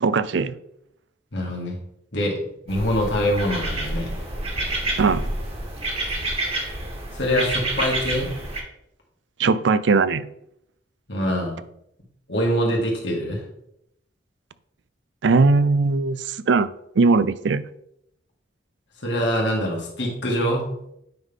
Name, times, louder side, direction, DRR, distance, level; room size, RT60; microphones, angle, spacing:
voice 1, 0.0-0.5 5.0-5.3 9.4-10.2 15.2-16.7 17.0-17.6, right 4 dB, 80° right, 15 dB, 0.5 m, -19 dB
voice 2, 1.3-1.8 2.1-2.4 2.7-4.1 7.1-8.3 11.1-11.6 12.3-13.4 19.0-20.7, equal, 75° left, -2 dB, 2.2 m, -24 dB
sound 1, 2.7-8.6, right 1 dB, 35° right, 1.7 m, -28 dB
9.3 x 5.6 x 3.6 m, 0.77 s
head